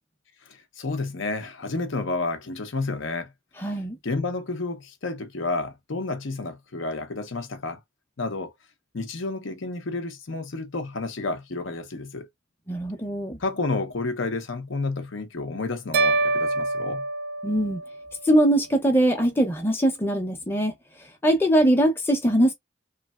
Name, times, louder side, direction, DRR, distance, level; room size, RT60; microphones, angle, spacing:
voice 1, 0.5-3.3 4.0-7.8 8.2-8.5 8.9-12.3 13.4-17.0, left 3 dB, 85° left, 0.8 m, -30 dB
voice 2, 3.6-4.0 12.7-13.4 17.4-17.8 18.2-20.7 21.2-22.5, right 1 dB, 10° left, 0.6 m, -21 dB
sound 1, 15.9-18.2, right 3 dB, 55° right, 0.3 m, -25 dB
3.2 x 2.3 x 2.3 m
head